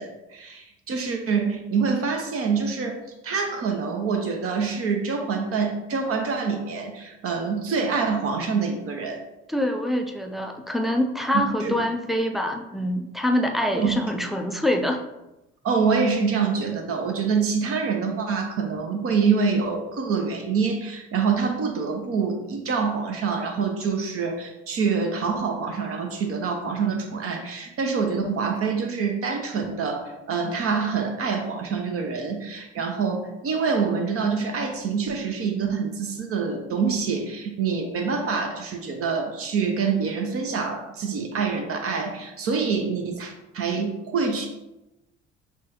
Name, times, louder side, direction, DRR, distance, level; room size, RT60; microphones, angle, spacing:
voice 1, 0.0-9.2 11.3-11.7 13.7-14.0 15.6-44.5, right 5 dB, 40° right, 3 dB, 0.7 m, -26 dB
voice 2, 9.5-15.0, left 1 dB, ahead, 3 dB, 0.4 m, -25 dB
5.9 x 2.2 x 3.0 m, 0.96 s
figure-of-eight pair, 55°, 35 cm